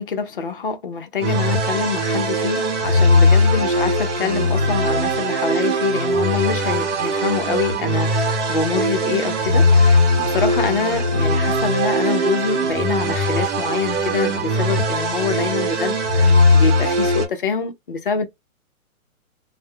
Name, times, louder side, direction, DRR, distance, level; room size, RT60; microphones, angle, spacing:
voice 1, 0.0-18.2, left 5 dB, 40° left, 0.4 m, -25 dB
sound 1, 1.2-17.3, left 1 dB, 55° right, 0.9 m, -19 dB
2.2 x 2.0 x 3.4 m
hypercardioid pair, 165°, 43 cm